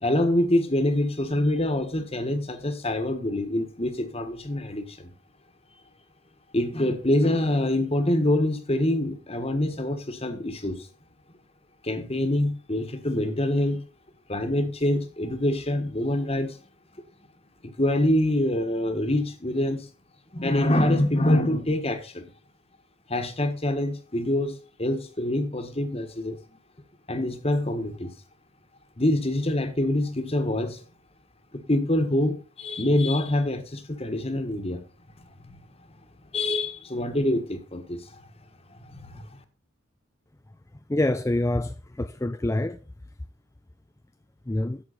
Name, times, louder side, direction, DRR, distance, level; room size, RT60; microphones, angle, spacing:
voice 1, 0.0-5.1 6.5-10.9 11.8-13.8 14.3-16.6 17.6-19.9 20.3-22.3 23.1-26.4 27.1-28.1 29.0-30.8 31.5-34.8 35.4-35.6 36.3-38.3 38.8-39.2, left 1 dB, 30° left, 1.5 m, -25 dB
voice 2, 40.9-42.8 44.5-44.8, left 1 dB, 15° left, 0.4 m, -26 dB
11.5 x 8.0 x 4.2 m
head